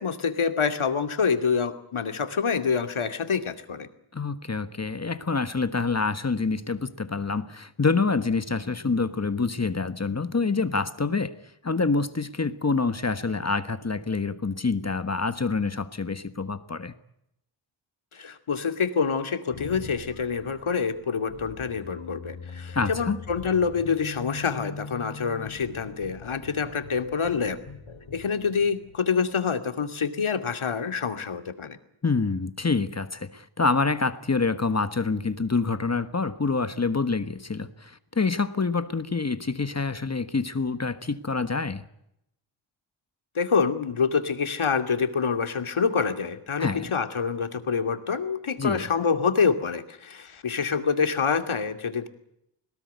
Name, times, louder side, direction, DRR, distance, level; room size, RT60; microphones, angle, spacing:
voice 1, 0.0-3.9 18.1-27.6 28.1-31.8 43.3-52.1, left 5 dB, 70° left, 8 dB, 2.6 m, -26 dB
voice 2, 4.1-11.3 11.6-16.9 22.7-23.2 32.0-41.8 46.6-46.9 48.6-48.8, left 4 dB, 30° left, 11 dB, 1.4 m, -26 dB
sound 1, 19.5-29.6, left 4 dB, 85° left, 4.9 m, -42 dB
22.0 x 20.0 x 9.4 m, 0.79 s
wide cardioid pair, 105°, 50 cm